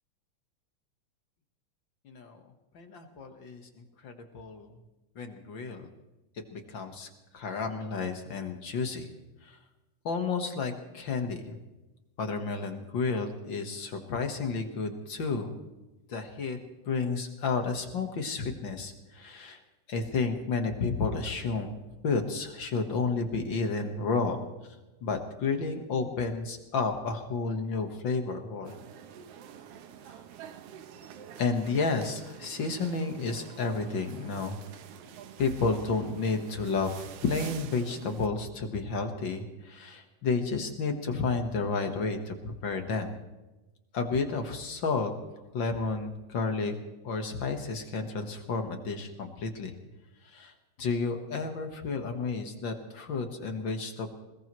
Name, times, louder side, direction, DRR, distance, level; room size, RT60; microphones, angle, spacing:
voice 1, 2.0-2.4 2.7-4.7 5.1-5.9 6.5-7.1 7.3-9.1 9.4-9.6 10.0-11.6 12.2-15.5 16.1-16.6 16.8-19.6 19.9-21.7 22.0-24.4 25.0-28.8 31.4-34.6 35.4-43.1 43.9-45.1 45.5-46.7 47.0-49.7 50.2-50.5 50.8-54.1, left 4 dB, 50° left, 5 dB, 1.6 m, -31 dB
sound 1, 28.6-38.3, right 9 dB, 65° right, 1.6 m, -47 dB
21.5 x 20.5 x 3.1 m, 1.1 s
omnidirectional pair, 3.6 m